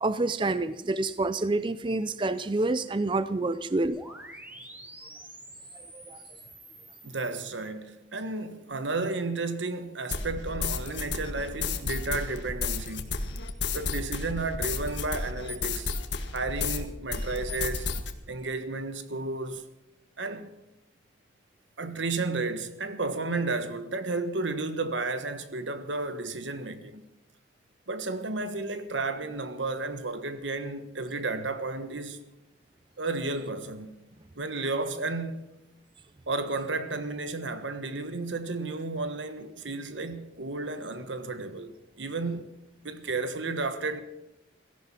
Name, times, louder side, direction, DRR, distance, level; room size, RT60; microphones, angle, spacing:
voice 1, 0.0-4.0 6.1-6.2, right 2 dB, 25° right, 0.4 m, -27 dB
sound 1, 3.8-7.5, right 1 dB, 10° right, 1.6 m, -47 dB
voice 2, 7.0-13.1 13.7-15.9 16.3-17.9 18.3-19.6 20.2-20.5 21.8-27.0 27.9-32.2 33.0-34.0 34.4-35.5 36.3-42.5 42.8-44.0, right 3 dB, 90° right, 1.4 m, -32 dB
sound 2, 10.1-16.8 17.1-18.1, left 4 dB, 75° left, 1.6 m, -32 dB
17.0 x 14.0 x 5.9 m
head